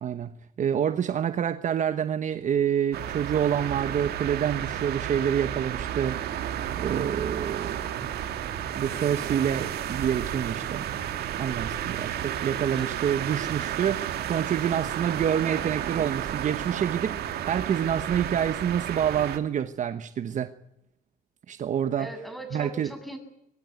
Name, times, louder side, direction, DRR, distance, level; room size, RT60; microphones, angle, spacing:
voice 1, 0.0-6.2 6.8-8.1 8.7-10.9 11.4-20.5 21.5-22.1 22.5-22.9, right 9 dB, 45° right, 1.1 m, -27 dB
sound 1, 2.9-19.4, right 10 dB, 70° right, 2.3 m, -32 dB
voice 2, 12.4-13.0 22.0-23.2, right 1 dB, ahead, 7.3 m, -41 dB
24.5 x 19.0 x 9.4 m
cardioid pair, 110°, 17 cm